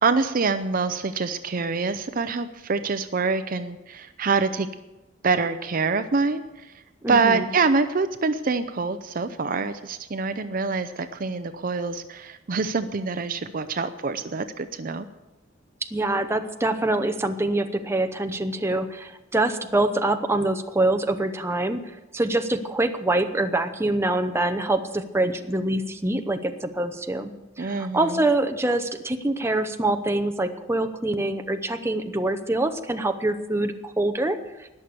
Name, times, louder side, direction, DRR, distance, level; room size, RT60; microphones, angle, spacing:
voice 1, 0.0-4.7 5.2-6.7 7.1-15.1 27.6-28.2, right 4 dB, 45° right, 10 dB, 0.5 m, -25 dB
voice 2, 7.0-7.5 15.9-21.8 22.1-27.3 27.6-34.4, right 2 dB, 15° right, 7 dB, 0.8 m, -25 dB
20.0 x 6.7 x 6.9 m, 1.0 s
head